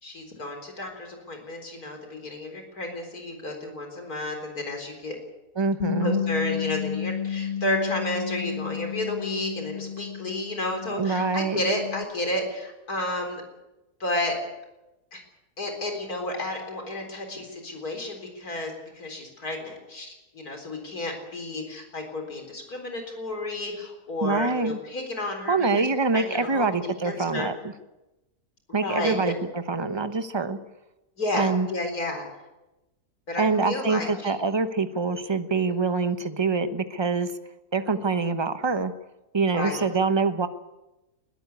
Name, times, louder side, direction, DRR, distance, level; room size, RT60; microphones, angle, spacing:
voice 1, 0.0-5.2 6.0-13.4 14.0-14.4 15.1-15.2 15.6-25.9 26.1-27.5 28.7-29.3 31.2-32.3 33.3-34.4 35.5-35.8 39.5-39.8, left 1 dB, 70° left, 3 dB, 4.5 m, -32 dB
voice 2, 5.6-6.2 11.0-11.6 24.2-24.8 25.5-27.6 28.7-30.6 31.3-31.7 33.4-37.3 37.7-38.9 39.3-40.5, right 4 dB, 20° right, 10 dB, 0.8 m, -25 dB
Bass guitar, 5.8-12.0, left 8 dB, 35° left, 0.8 m, -32 dB
22.0 x 13.5 x 9.5 m, 1.0 s
omnidirectional pair, 1.7 m